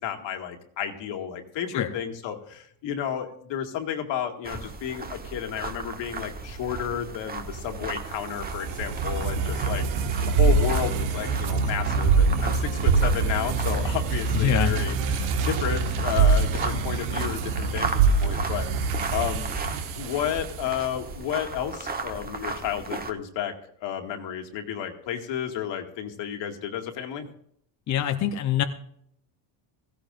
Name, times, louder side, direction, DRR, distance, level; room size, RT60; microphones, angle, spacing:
voice 1, 0.0-19.5 20.0-23.5 23.8-27.3, left 9 dB, 65° left, 4 dB, 2.2 m, -32 dB
sound 1, 4.4-23.1, right 4 dB, 20° right, 1.2 m, -36 dB
sound 2, 7.6-21.0, right 4 dB, 80° right, 1.7 m, -25 dB
voice 2, 14.3-14.7 27.9-28.6, left 10 dB, 35° left, 6 dB, 0.8 m, -24 dB
16.5 x 16.0 x 2.6 m, 0.68 s
cardioid pair, 125°, 47 cm